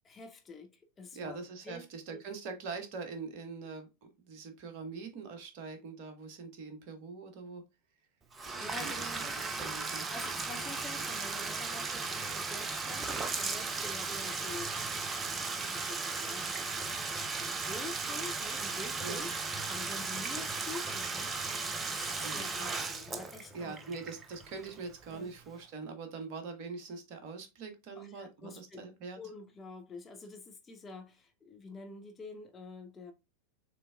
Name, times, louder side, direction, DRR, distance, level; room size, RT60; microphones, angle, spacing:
voice 1, 0.1-1.4 1.6-1.8 2.1-2.2 8.6-9.3 10.1-14.8 15.3-16.9 17.3-23.7 25.1-25.3 28.0-28.9 29.1-33.1, left 3 dB, 20° left, 0.9 m, -47 dB
voice 2, 1.1-3.9 4.2-7.6 8.4-10.1 19.0-19.3 22.2-22.4 23.5-29.2, right 4 dB, 45° right, 1.3 m, -43 dB
Bathtub (filling or washing), 8.3-25.1, right 4 dB, 20° right, 0.6 m, -36 dB
6.7 x 3.3 x 2.4 m
figure-of-eight pair, 90°, 0 cm